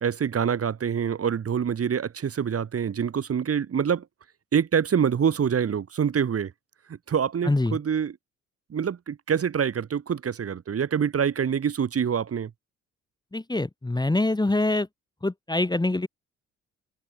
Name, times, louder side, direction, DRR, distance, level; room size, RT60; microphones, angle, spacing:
voice 1, 0.0-4.0 4.5-6.5 7.1-8.1 8.7-12.5, right 7 dB, 45° right, 2.0 m, -25 dB
voice 2, 7.4-7.8 13.3-14.9 15.2-16.1, left 2 dB, 15° left, 1.6 m, -24 dB
supercardioid pair, 65°, 32 cm